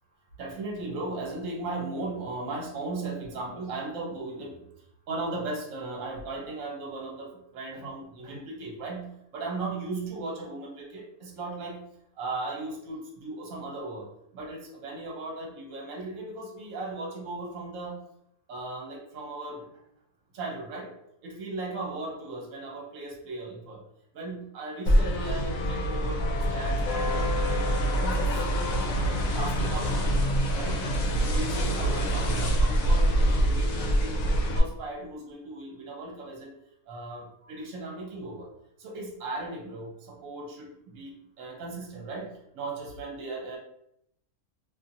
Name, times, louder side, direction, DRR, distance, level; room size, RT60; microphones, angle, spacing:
voice 1, 0.4-4.7 5.1-11.8 12.2-14.1 14.3-18.0 18.5-19.7 20.3-20.9 21.2-23.8 24.1-28.4 29.0-30.1 30.5-30.8 31.2-36.5 36.9-38.5 38.8-43.6, right 2 dB, 65° right, -1 dB, 1.1 m, -37 dB
sound 1, 24.9-34.6, equal, 75° left, 1.0 m, -25 dB
2.7 x 2.7 x 2.6 m, 0.75 s
omnidirectional pair, 1.6 m